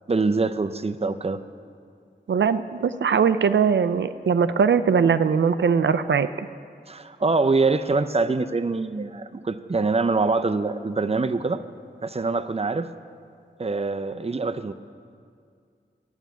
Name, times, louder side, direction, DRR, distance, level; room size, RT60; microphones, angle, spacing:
voice 1, 0.1-1.4 6.9-11.6 12.0-12.9 13.6-14.7, right 3 dB, 35° right, 10 dB, 0.5 m, -24 dB
voice 2, 2.3-6.5, right 6 dB, 80° right, 12 dB, 0.5 m, -21 dB
11.5 x 7.2 x 9.1 m, 2.2 s
wide cardioid pair, 60°, 19 cm